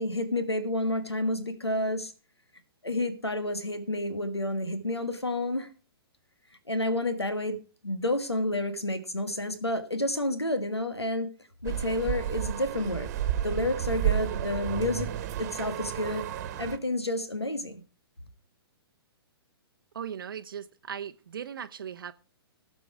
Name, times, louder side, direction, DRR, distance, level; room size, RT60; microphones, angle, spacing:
voice 1, 0.0-2.1 2.8-5.7 6.7-7.6 7.8-11.3 11.6-13.1 13.4-15.1 15.4-16.3 16.6-17.8, left 1 dB, 85° left, 1.7 m, -30 dB
sound 1, 11.6-16.8, right 11 dB, 40° right, 1.3 m, -31 dB
voice 2, 19.9-22.1, right 8 dB, 60° right, 0.7 m, -38 dB
17.0 x 7.3 x 4.6 m
figure-of-eight pair, 115°, 13 cm